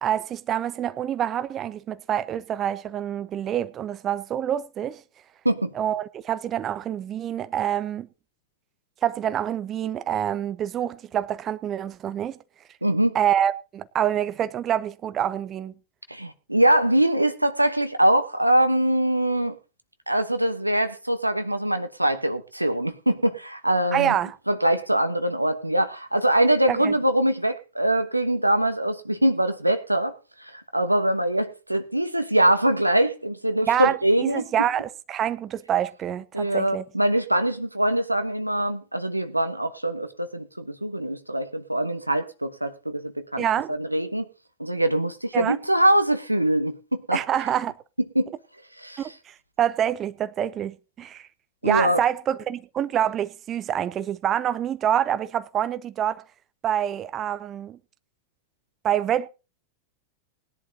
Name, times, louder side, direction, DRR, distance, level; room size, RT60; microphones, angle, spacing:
voice 1, 0.0-5.0 5.7-8.1 9.0-12.4 13.1-15.7 23.9-24.4 26.7-26.9 33.7-36.8 43.4-43.7 45.3-45.6 47.1-47.7 49.0-51.3 51.6-56.3 56.6-57.8 58.8-59.3, right 10 dB, 30° right, 0.6 m, -26 dB
voice 2, 12.8-13.2 16.1-19.6 20.1-24.2 24.5-30.1 30.4-34.5 36.3-44.3 44.6-47.2 48.1-48.3 48.8-49.0 51.6-52.0, right 1 dB, 85° right, 1.1 m, -23 dB
19.5 x 11.0 x 2.8 m
figure-of-eight pair, 90°, 0 cm